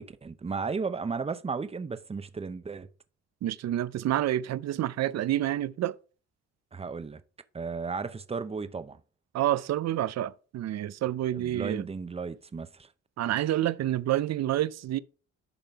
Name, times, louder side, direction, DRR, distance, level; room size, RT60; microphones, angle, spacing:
voice 1, 0.0-2.9 6.7-7.2 7.5-9.0 11.3-12.9, right 4 dB, 20° right, 0.7 m, -34 dB
voice 2, 3.4-5.9 9.3-11.9 13.2-15.0, right 13 dB, 60° right, 0.6 m, -28 dB
11.0 x 3.8 x 4.6 m
cardioid pair, 90°, 30 cm